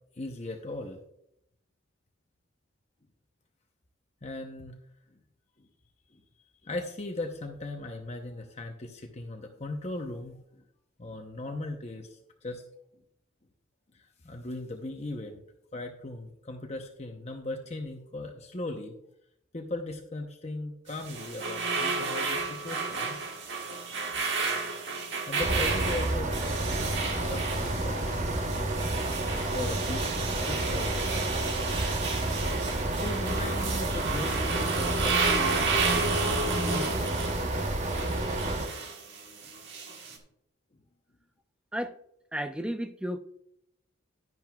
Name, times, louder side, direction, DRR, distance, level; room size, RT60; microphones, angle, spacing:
voice 1, 0.1-1.0 4.2-4.8 5.1-5.2 5.6-5.7 6.1-6.2 6.6-10.6 11.0-12.6 13.9-15.4 15.7-19.0 19.5-23.2 25.3-26.8 27.2-28.7 29.5-31.2 31.9-32.1 33.0-37.0 40.1-40.2, left 2 dB, 35° left, 3 dB, 0.8 m, -38 dB
sound 1, 20.9-40.2, right 4 dB, 60° right, 1.4 m, -32 dB
sound 2, 25.4-38.7, right 1 dB, 35° right, 0.9 m, -30 dB
voice 2, 42.3-43.2, equal, 5° right, 8 dB, 0.4 m, -32 dB
11.0 x 10.5 x 2.3 m, 0.77 s
head